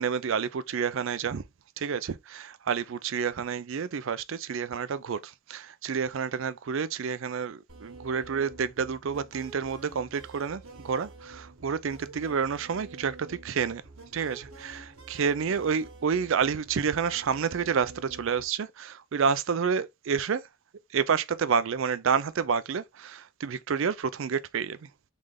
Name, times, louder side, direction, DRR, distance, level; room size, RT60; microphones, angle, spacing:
voice 1, 0.0-1.4 1.8-13.8 14.1-20.4 20.9-24.8, right 6 dB, 60° right, 0.4 m, -29 dB
sound 1, 7.7-18.5, right 3 dB, 80° right, 1.3 m, -48 dB
3.7 x 3.2 x 3.5 m
head